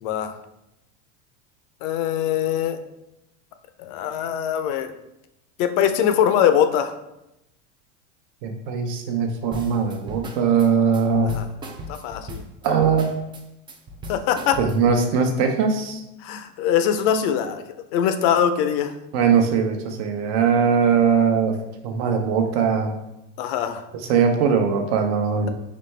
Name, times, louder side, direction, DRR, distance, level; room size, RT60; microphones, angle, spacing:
voice 1, 0.0-0.3 1.8-2.8 3.8-4.9 5.6-6.9 11.3-11.5 11.9-12.4 14.1-14.6 16.2-17.6 17.9-18.9 23.4-23.8, left 9 dB, 60° left, 9 dB, 0.6 m, -22 dB
voice 2, 8.4-11.3 12.6-13.1 14.6-16.0 19.1-21.6 21.8-22.9 24.1-25.5, right 6 dB, 55° right, 5 dB, 0.8 m, -20 dB
sound 1, 9.5-15.0, equal, 15° right, 0.3 m, -38 dB
4.2 x 3.2 x 3.3 m, 0.88 s
supercardioid pair, 120°, 37 cm